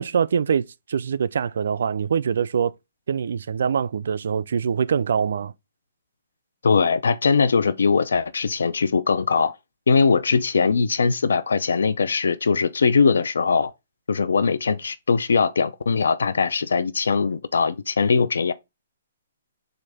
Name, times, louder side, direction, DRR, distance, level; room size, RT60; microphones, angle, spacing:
voice 1, 0.0-2.7 3.1-5.5, right 7 dB, 70° right, 0.3 m, -24 dB
voice 2, 6.6-9.6 9.9-13.7 14.1-18.5, left 5 dB, 90° left, 0.5 m, -21 dB
6.3 x 2.5 x 3.3 m
hypercardioid pair, 160°, 0 cm